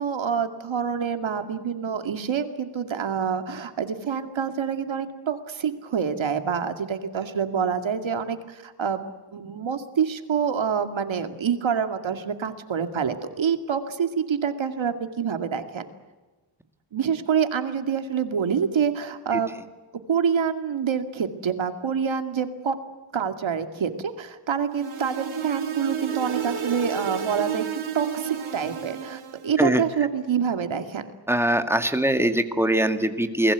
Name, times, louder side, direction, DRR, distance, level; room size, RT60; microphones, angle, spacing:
voice 1, 0.0-9.1 9.3-15.9 16.9-19.5 20.1-22.8 23.1-31.1, right 7 dB, 70° right, 8 dB, 2.3 m, -27 dB
sound 1, 24.7-29.5, right 7 dB, 90° right, 2.8 m, -31 dB
voice 2, 31.3-33.5, right 1 dB, 5° right, 7 dB, 1.9 m, -22 dB
28.5 x 20.5 x 8.2 m, 1.2 s
wide cardioid pair, 135°, 47 cm